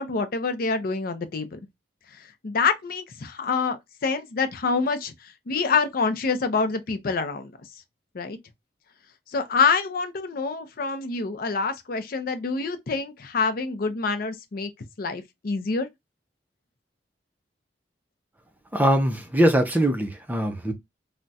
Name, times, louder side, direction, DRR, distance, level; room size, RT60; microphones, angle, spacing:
voice 1, 0.0-1.6 2.4-5.1 5.5-7.5 8.1-8.4 9.3-14.7 15.0-15.9, left 4 dB, 55° left, 0.5 m, -26 dB
voice 2, 18.7-20.7, right 1 dB, 10° right, 0.5 m, -22 dB
2.3 x 2.1 x 3.9 m
head